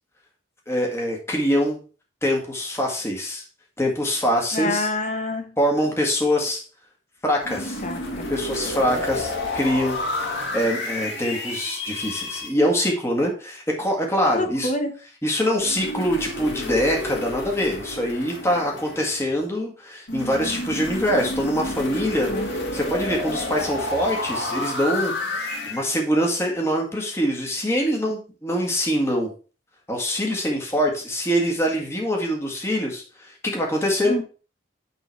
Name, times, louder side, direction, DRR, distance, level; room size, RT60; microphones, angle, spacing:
voice 1, 0.7-1.8 2.2-3.4 3.8-4.9 5.6-6.6 7.2-7.8 8.3-10.0 10.5-14.7 15.2-29.3 29.9-34.1, equal, 15° left, 1.7 m, -24 dB
voice 2, 4.5-5.5 7.8-8.3 8.8-9.2 14.3-14.9 20.9-21.0 22.3-22.5 34.0-34.2, left 2 dB, 40° left, 1.2 m, -28 dB
sound 1, 7.4-12.5 15.6-19.4 20.1-25.8, left 1 dB, 75° left, 2.1 m, -30 dB
8.9 x 3.9 x 4.6 m
head